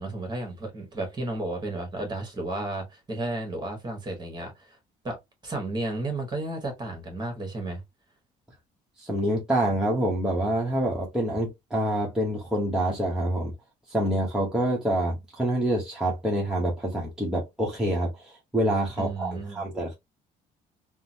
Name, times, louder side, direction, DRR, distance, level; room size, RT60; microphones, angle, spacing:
voice 1, 0.0-4.8 5.0-5.2 5.4-7.8 19.0-19.6, right 2 dB, 25° right, 1.5 m, -33 dB
voice 2, 9.0-13.5 13.9-19.9, right 1 dB, 5° right, 1.0 m, -26 dB
3.7 x 2.1 x 2.7 m
cardioid pair, 110°, 17 cm